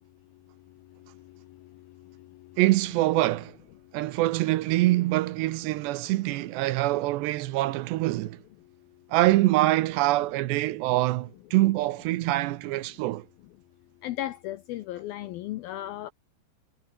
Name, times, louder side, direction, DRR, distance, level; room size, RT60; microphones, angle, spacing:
voice 1, 2.6-3.6 3.9-8.4 9.1-13.3, right 17 dB, 80° right, 2.9 m, -24 dB
voice 2, 14.0-16.1, left 14 dB, 80° left, 2.2 m, -34 dB
omnidirectional pair, 5.2 m